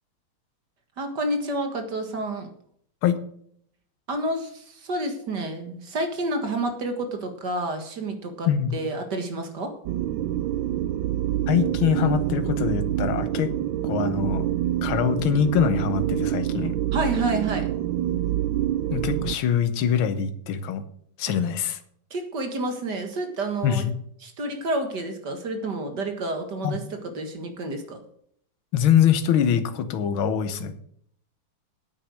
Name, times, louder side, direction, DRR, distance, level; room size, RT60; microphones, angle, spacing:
voice 1, 1.0-2.5 4.1-9.7 16.9-17.7 22.1-23.9 24.2-28.0, right 2 dB, 55° right, 5 dB, 2.2 m, -29 dB
sound 1, 9.9-19.4, right 12 dB, 75° right, 1.2 m, -26 dB
voice 2, 11.5-13.5 13.8-14.5 14.8-16.8 18.9-20.8 21.2-21.8 23.6-23.9 26.6-26.8 28.7-30.7, left 8 dB, 70° left, 10 dB, 1.8 m, -23 dB
9.6 x 8.7 x 6.4 m, 0.65 s
omnidirectional pair, 2.4 m